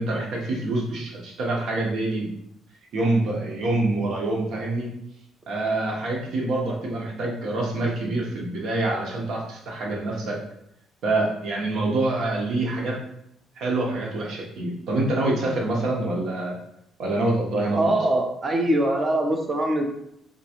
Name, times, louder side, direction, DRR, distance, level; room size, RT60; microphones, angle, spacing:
voice 1, 0.0-2.3 2.9-4.9 5.5-10.4 11.0-13.0 13.6-16.6 17.0-18.0, right 2 dB, 65° right, -1 dB, 1.1 m, -26 dB
voice 2, 17.8-19.8, right 1 dB, 30° right, 3 dB, 0.6 m, -22 dB
3.7 x 2.9 x 3.0 m, 0.76 s
cardioid pair, 110°, 0 cm